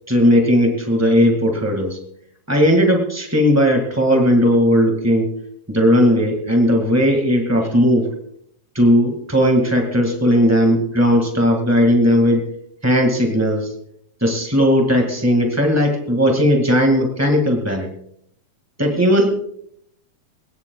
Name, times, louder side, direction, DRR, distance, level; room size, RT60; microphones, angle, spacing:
voice 1, 0.1-2.0 2.5-5.3 5.7-8.1 8.7-12.4 12.8-13.7 14.2-17.9 18.8-19.4, equal, 20° right, 2 dB, 0.4 m, -16 dB
22.5 x 18.5 x 2.3 m, 0.70 s
omnidirectional pair, 4.3 m